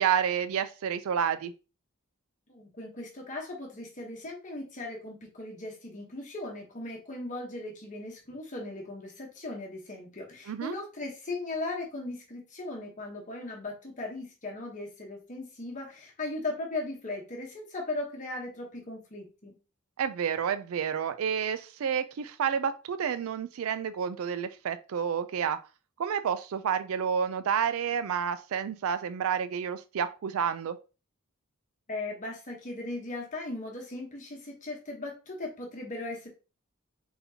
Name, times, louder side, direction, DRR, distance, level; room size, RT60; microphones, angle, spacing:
voice 1, 0.0-1.5 10.5-10.8 20.0-25.6 26.0-30.8, right 7 dB, 70° right, 0.4 m, -29 dB
voice 2, 2.5-19.5 31.9-36.3, left 2 dB, 35° left, 1.0 m, -38 dB
4.3 x 3.9 x 2.7 m
head